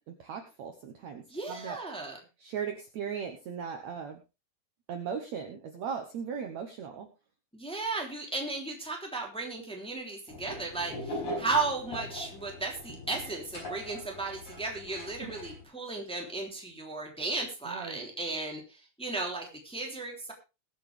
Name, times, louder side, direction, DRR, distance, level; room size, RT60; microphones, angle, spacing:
voice 1, 0.1-1.8 2.4-4.2 4.9-7.1 15.2-15.3 17.7-18.0, right 7 dB, 60° right, 5 dB, 2.0 m, -38 dB
voice 2, 1.3-2.2 7.5-20.3, right 3 dB, ahead, 0 dB, 2.5 m, -35 dB
sound 1, 10.3-15.6, left 1 dB, 35° left, 5.9 m, -41 dB
21.5 x 7.8 x 3.4 m, 0.28 s
omnidirectional pair, 4.3 m